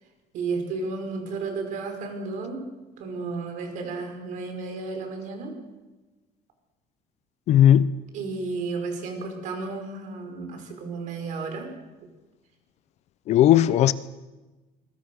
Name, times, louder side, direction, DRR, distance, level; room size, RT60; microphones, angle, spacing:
voice 1, 0.3-2.6 3.0-5.5 8.1-11.7, right 4 dB, 55° right, 5.2 m, -32 dB
voice 2, 7.5-7.9 13.3-13.9, left 11 dB, 45° left, 0.7 m, -17 dB
26.0 x 21.5 x 6.4 m
cardioid pair, 180°, 16 cm